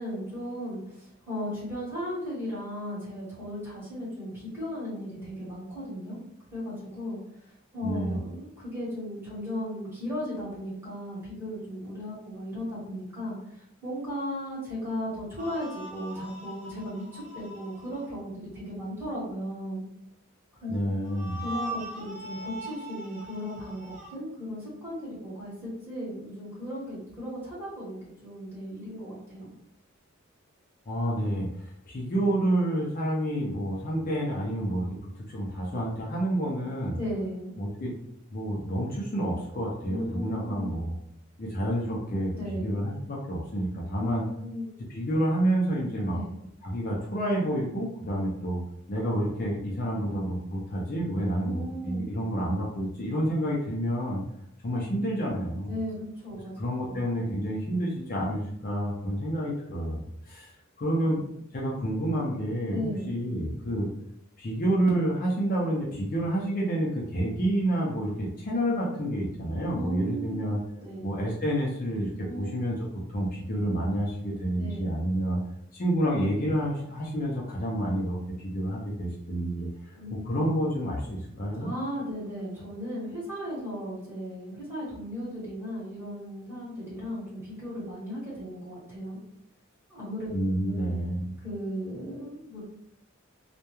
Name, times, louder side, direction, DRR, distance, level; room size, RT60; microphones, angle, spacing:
voice 1, 0.0-6.2 6.5-7.2 7.7-13.4 13.8-19.8 20.6-20.9 21.4-29.5 37.0-37.5 39.9-40.7 42.3-42.8 44.0-44.6 46.1-46.3 51.4-52.1 55.7-56.0 56.2-57.0 62.7-63.1 69.7-70.5 70.8-71.0 72.3-72.5 74.6-75.0 79.9-80.4 81.6-89.2 89.9-90.3 90.6-91.0 91.4-92.6, equal, 10° right, -8 dB, 1.2 m, -36 dB
voice 2, 7.8-8.2 20.7-21.4 30.9-31.5 31.9-34.9 35.3-37.0 37.6-37.9 38.3-40.9 41.4-44.3 44.9-46.2 46.6-48.6 48.9-54.2 54.6-55.8 56.6-60.0 60.3-61.2 61.5-63.9 64.4-70.6 71.0-72.8 73.1-75.4 75.7-79.7 80.1-81.7 90.3-91.4, right 1 dB, 40° left, -3 dB, 0.5 m, -29 dB
sound 1, 15.4-18.1 21.0-24.1, right 1 dB, 35° right, 0.5 m, -41 dB
2.2 x 2.1 x 2.9 m, 0.75 s
head